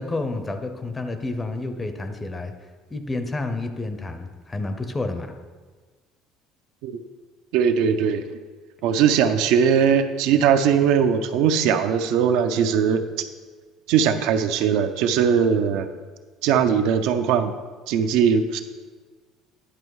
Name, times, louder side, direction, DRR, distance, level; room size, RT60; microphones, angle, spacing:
voice 1, 0.0-2.5 2.9-5.3, left 2 dB, 10° left, 7 dB, 0.5 m, -29 dB
voice 2, 7.5-8.2 8.8-13.0 13.9-15.9 16.4-17.5 17.9-18.6, right 7 dB, 70° right, 8 dB, 0.5 m, -20 dB
10.0 x 5.4 x 4.7 m, 1.4 s
cardioid pair, 175°, 0 cm